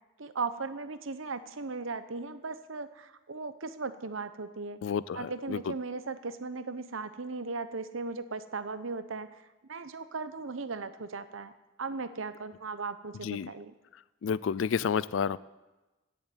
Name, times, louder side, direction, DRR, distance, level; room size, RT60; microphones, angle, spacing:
voice 1, 0.2-4.8 5.1-9.3 9.7-11.5 11.8-13.7, right 4 dB, 90° right, 12 dB, 0.9 m, -37 dB
voice 2, 4.8-5.6 13.2-13.5 14.2-15.4, left 6 dB, 80° left, 19 dB, 0.4 m, -30 dB
16.0 x 7.3 x 9.0 m, 1.1 s
head